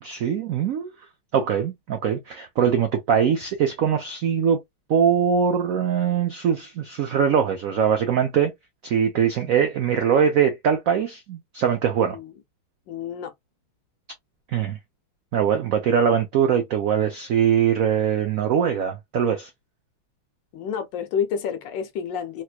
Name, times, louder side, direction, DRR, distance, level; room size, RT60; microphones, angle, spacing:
voice 1, 0.0-0.9 1.3-4.6 4.9-8.5 8.8-12.2 14.5-14.8 15.3-19.5, right 8 dB, 80° right, 0.7 m, -22 dB
voice 2, 12.9-13.3 20.5-22.4, left 7 dB, 70° left, 1.3 m, -29 dB
3.3 x 3.1 x 2.2 m
omnidirectional pair, 2.2 m